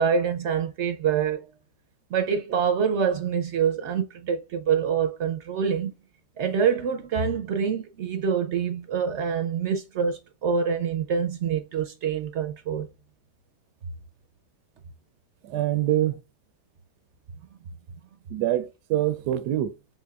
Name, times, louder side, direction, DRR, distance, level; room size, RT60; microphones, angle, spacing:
voice 1, 0.0-1.5 2.1-5.9 6.4-12.9, right 6 dB, 65° right, 0.7 m, -26 dB
voice 2, 15.4-16.2 18.3-19.8, right 13 dB, 90° right, 1.2 m, -25 dB
4.3 x 3.6 x 2.3 m
omnidirectional pair, 1.7 m